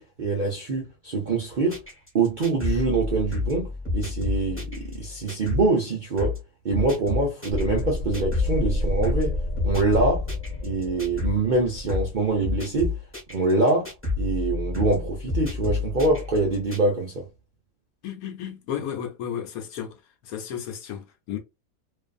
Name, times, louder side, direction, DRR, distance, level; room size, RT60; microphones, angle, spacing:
voice 1, 0.0-1.8 2.1-6.4 6.6-9.4 9.6-10.3 10.6-13.0 13.3-13.9 14.2-17.3, right 3 dB, 55° right, 0.5 m, -24 dB
sound 1, 1.7-5.7 6.2-6.4 6.7-11.4 11.9-12.1 12.4-16.8, left 3 dB, 10° left, 1.1 m, -29 dB
sound 2, 7.5-12.9, left 1 dB, 50° left, 0.5 m, -31 dB
voice 2, 18.0-19.9 20.3-21.4, left 9 dB, 75° left, 1.1 m, -33 dB
2.6 x 2.4 x 2.4 m
omnidirectional pair, 1.6 m